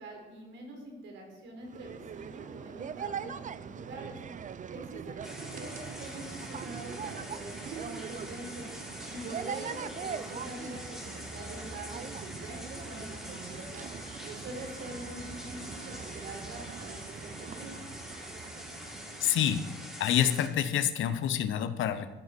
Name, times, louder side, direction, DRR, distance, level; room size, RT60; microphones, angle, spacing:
voice 1, 0.0-4.2 4.7-8.7 9.1-13.8 14.2-17.8, right 2 dB, 75° right, 1 dB, 4.2 m, -44 dB
sound 1, 1.6-20.1, right 7 dB, 40° right, 0.6 m, -42 dB
sound 2, 5.2-20.5, equal, ahead, 4.4 m, -44 dB
voice 2, 19.2-19.7 20.0-22.1, left 10 dB, 75° left, 12 dB, 0.9 m, -27 dB
14.0 x 9.6 x 4.5 m, 1.1 s
cardioid pair, 90°, 20 cm